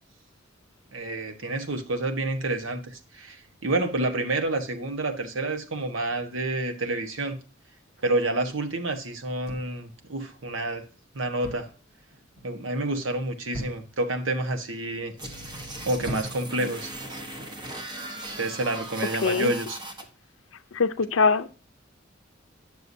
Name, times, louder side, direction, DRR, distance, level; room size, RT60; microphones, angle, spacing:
voice 1, 0.9-7.4 8.0-10.9 11.1-11.7 12.4-15.1 15.8-16.9 18.4-19.8, right 2 dB, 75° right, 1.2 m, -29 dB
sound 1, 9.5-10.0 11.4-11.8 12.1-12.5 13.5-14.1 14.8-15.2 16.0-16.6 17.6-17.9, equal, 55° right, 2.7 m, -39 dB
sound 2, 15.2-20.0, right 1 dB, 25° right, 1.0 m, -38 dB
voice 2, 19.2-19.5 20.7-21.5, left 4 dB, 80° left, 0.6 m, -22 dB
9.5 x 6.7 x 2.7 m
head